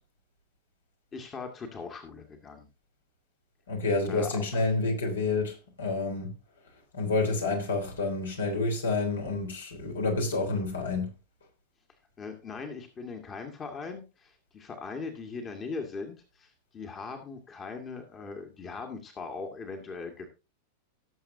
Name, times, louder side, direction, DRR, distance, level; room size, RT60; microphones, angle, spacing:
voice 1, 1.1-2.7 4.1-4.7 12.2-20.3, left 4 dB, 25° left, 1.9 m, -40 dB
voice 2, 3.7-6.3 6.9-11.1, left 3 dB, 70° left, 3.5 m, -29 dB
18.0 x 7.4 x 2.7 m
figure-of-eight pair, 90°, 0 cm